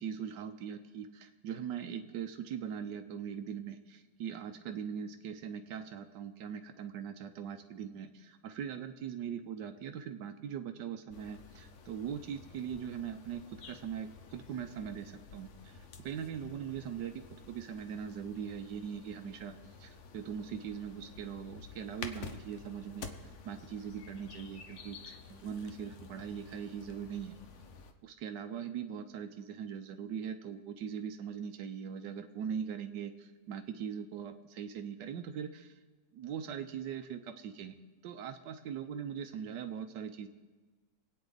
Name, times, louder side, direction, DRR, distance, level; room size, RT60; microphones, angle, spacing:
voice 1, 0.0-17.1 17.5-23.1 23.4-27.4 28.0-35.7 36.1-37.7 38.0-40.3, right 8 dB, 85° right, 8 dB, 1.5 m, -41 dB
sound 1, 11.1-27.9, left 5 dB, 50° left, 1.0 m, -51 dB
25.5 x 9.0 x 4.0 m, 1.3 s
omnidirectional pair, 1.8 m